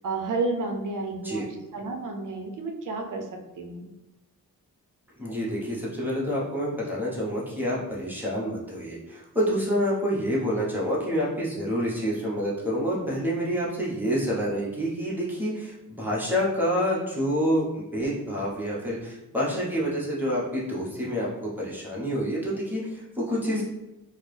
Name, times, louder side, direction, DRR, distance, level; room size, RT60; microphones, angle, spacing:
voice 1, 0.0-1.4 1.7-3.3 3.6-3.9 23.4-23.6, right 3 dB, 60° right, 2 dB, 0.6 m, -31 dB
voice 2, 5.2-21.3 21.6-23.6, equal, 5° right, -7 dB, 0.8 m, -28 dB
4.1 x 2.0 x 3.2 m, 0.97 s
wide cardioid pair, 165°, 35 cm